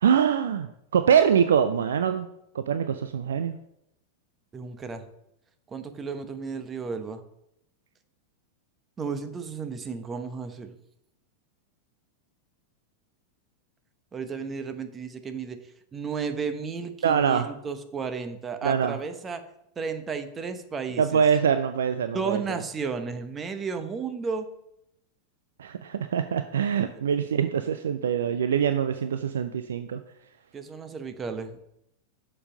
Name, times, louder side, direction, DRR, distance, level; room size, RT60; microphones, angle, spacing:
voice 1, 0.0-2.3 2.5-3.6 17.0-17.5 18.6-19.0 21.0-22.6 25.6-30.0, right 7 dB, 65° right, 9 dB, 0.4 m, -24 dB
voice 2, 4.5-5.0 5.7-7.2 9.0-10.8 14.1-19.4 19.8-21.2 22.1-24.5 30.5-31.6, right 5 dB, 20° right, 8 dB, 0.9 m, -33 dB
6.9 x 5.6 x 5.1 m, 0.79 s
figure-of-eight pair, 90°, 0 cm